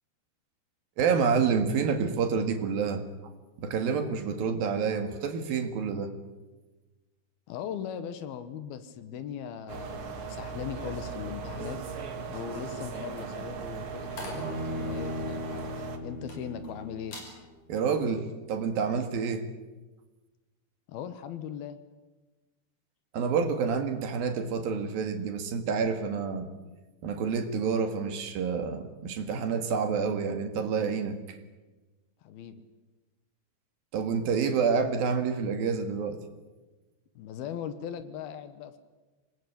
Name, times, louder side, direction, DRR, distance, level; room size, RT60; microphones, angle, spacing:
voice 1, 1.0-3.1 3.6-6.1 17.7-19.5 23.1-26.5 27.0-31.4 33.9-36.2, right 5 dB, 65° right, 7 dB, 3.5 m, -28 dB
voice 2, 7.5-11.8 12.2-17.2 20.9-21.8 32.2-32.6 37.2-38.8, left 8 dB, 70° left, 11 dB, 3.0 m, -39 dB
sound 1, 9.7-16.0, right 5 dB, 45° right, 2.0 m, -38 dB
sound 2, 12.9-16.7 17.0-17.4 17.8-18.1, left 1 dB, 50° left, 7.6 m, -46 dB
Bowed string instrument, 14.3-17.6, left 1 dB, 15° right, 4.8 m, -38 dB
25.5 x 20.5 x 8.6 m, 1.2 s
omnidirectional pair, 4.7 m